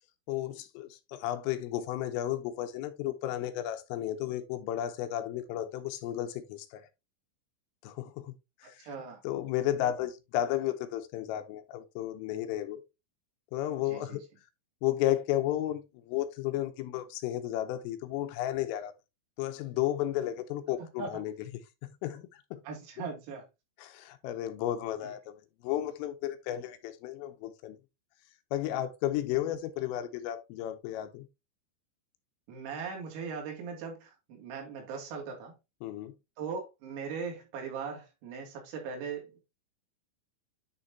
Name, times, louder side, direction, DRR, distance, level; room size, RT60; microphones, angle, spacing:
voice 1, 0.3-6.9 7.8-8.3 8.6-8.9 9.2-12.8 13.5-14.2 14.8-15.8 16.1-18.9 19.4-21.3 21.8-22.6 23.8-27.8 28.5-31.3 35.8-36.1, left 12 dB, 80° left, 3.3 m, -33 dB
voice 2, 8.8-9.2 13.9-14.2 21.0-21.2 22.7-23.5 25.0-25.1 32.5-35.6 36.4-39.4, right 5 dB, 85° right, 5.3 m, -39 dB
10.5 x 5.5 x 2.8 m
omnidirectional pair, 6.0 m